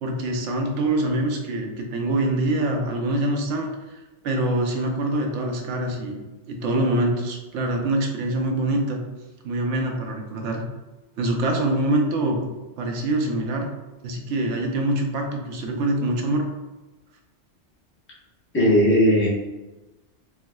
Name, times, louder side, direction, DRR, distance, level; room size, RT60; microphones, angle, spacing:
voice 1, 0.0-6.2 6.5-9.0 9.4-10.6 11.2-12.5 12.8-13.7 14.0-16.5, right 1 dB, 85° right, 2 dB, 0.9 m, -24 dB
voice 2, 18.5-19.3, equal, 10° left, -8 dB, 0.8 m, -17 dB
4.6 x 2.1 x 2.2 m, 1.1 s
omnidirectional pair, 1.2 m